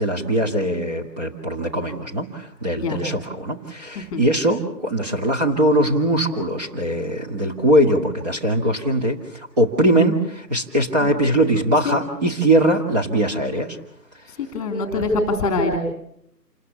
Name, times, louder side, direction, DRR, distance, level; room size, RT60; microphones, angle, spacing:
voice 1, 0.0-13.8 14.9-15.0, right 1 dB, 25° right, 0 dB, 2.2 m, -21 dB
voice 2, 14.4-15.8, left 3 dB, 5° left, 5 dB, 3.0 m, -24 dB
28.0 x 21.0 x 6.8 m, 0.74 s
figure-of-eight pair, 160°, 50 cm